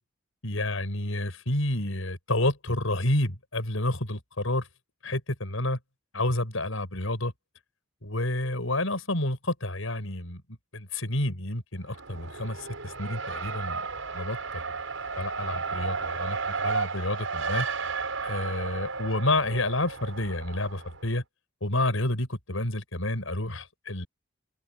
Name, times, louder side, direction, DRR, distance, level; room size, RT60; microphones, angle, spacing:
voice 1, 0.4-4.7 5.0-5.8 6.1-7.3 8.0-10.4 10.7-13.8 14.1-14.7 15.2-16.4 16.6-17.7 18.2-21.2 21.6-24.1, left 1 dB, 85° left, 5.8 m, -29 dB
Race car auto racing, 11.9-21.0, right 4 dB, 80° right, 6.7 m, -33 dB
head